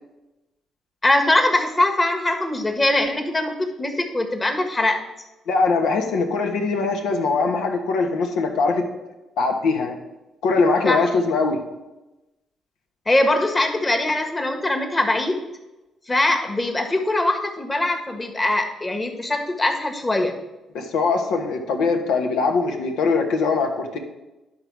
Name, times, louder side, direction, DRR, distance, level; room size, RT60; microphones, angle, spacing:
voice 1, 1.0-5.0 10.8-11.1 13.1-15.4 16.1-20.3, left 1 dB, 20° left, 3 dB, 1.4 m, -22 dB
voice 2, 5.5-8.8 9.4-10.0 10.4-11.6 20.7-24.0, left 4 dB, 85° left, 4 dB, 1.2 m, -21 dB
11.0 x 3.9 x 5.9 m, 1.0 s
cardioid pair, 90°, 0 cm